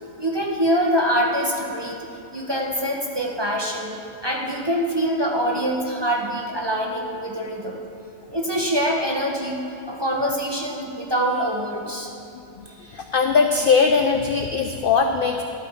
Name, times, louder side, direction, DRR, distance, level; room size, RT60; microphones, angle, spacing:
voice 1, 0.2-2.0 2.3-4.0 4.2-7.8 8.3-9.6 9.9-12.1, equal, 25° right, -2 dB, 0.7 m, -24 dB
voice 2, 12.6-15.4, left 5 dB, 70° left, 5 dB, 0.5 m, -20 dB
12.0 x 8.7 x 4.2 m, 2.8 s
omnidirectional pair, 1.4 m